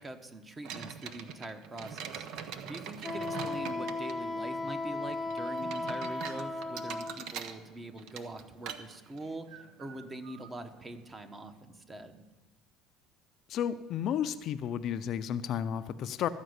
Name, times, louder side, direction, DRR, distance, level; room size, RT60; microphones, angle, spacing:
voice 1, 0.0-2.3 2.7-12.2, right 2 dB, 20° right, 8 dB, 1.1 m, -43 dB
sound 1, 0.6-11.6, right 7 dB, 65° right, 0.8 m, -44 dB
Wind instrument woodwind instrument, 3.0-7.2, left 2 dB, 15° left, 0.7 m, -36 dB
voice 2, 13.5-16.3, left 9 dB, 55° left, 11 dB, 0.5 m, -32 dB
13.5 x 5.1 x 8.0 m, 1.1 s
supercardioid pair, 110°, 0 cm